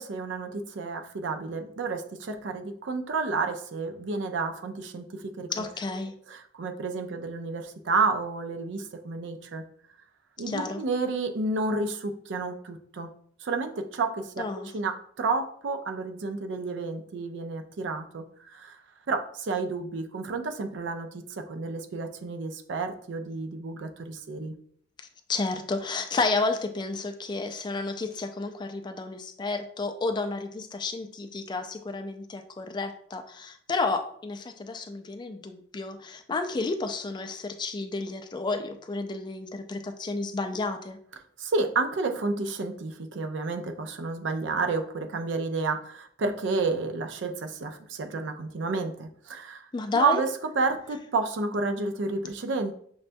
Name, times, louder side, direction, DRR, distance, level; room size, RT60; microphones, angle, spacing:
voice 1, 0.0-5.7 6.3-9.6 10.4-13.1 13.4-14.4 14.7-18.8 19.1-24.6 41.4-49.6 49.9-50.3 50.6-52.7, right 3 dB, 80° right, 6 dB, 0.5 m, -30 dB
voice 2, 5.5-6.1 10.5-10.8 14.4-14.7 25.3-41.0 49.7-50.2, left 3 dB, 25° left, 6 dB, 0.3 m, -31 dB
6.2 x 2.2 x 2.6 m, 0.62 s
head